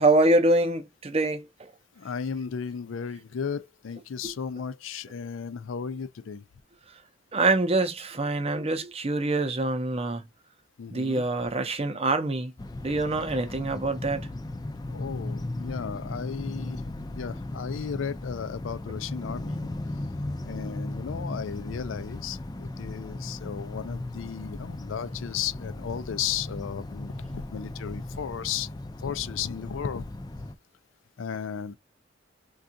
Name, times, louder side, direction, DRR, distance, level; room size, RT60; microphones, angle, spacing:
voice 1, 0.0-1.7 4.2-4.3 7.3-10.2 10.9-12.5 12.8-14.2, right 2 dB, 30° right, 0.6 m, -25 dB
voice 2, 2.0-6.4 10.8-11.3 14.9-19.7 20.4-28.7 29.0-30.0 31.2-31.8, left 7 dB, 90° left, 0.4 m, -35 dB
sound 1, 12.6-30.5, left 2 dB, 20° left, 0.4 m, -37 dB
3.6 x 2.3 x 2.6 m
head